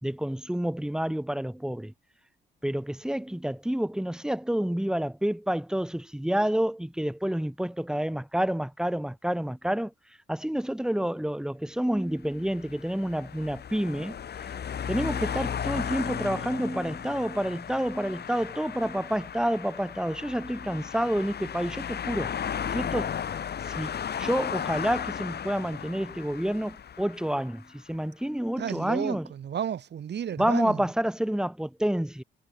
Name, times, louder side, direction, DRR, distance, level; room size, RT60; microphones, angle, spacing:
voice 1, 0.0-1.9 2.6-9.9 10.3-14.2 14.9-22.3 22.7-23.2 23.8-29.3 30.4-32.2, equal, 5° right, 5.9 m, -29 dB
sound 1, 12.2-27.6, left 8 dB, 55° left, 5.6 m, -35 dB
voice 2, 28.6-30.9, right 9 dB, 60° right, 4.7 m, -32 dB
cardioid pair, 90°, 20 cm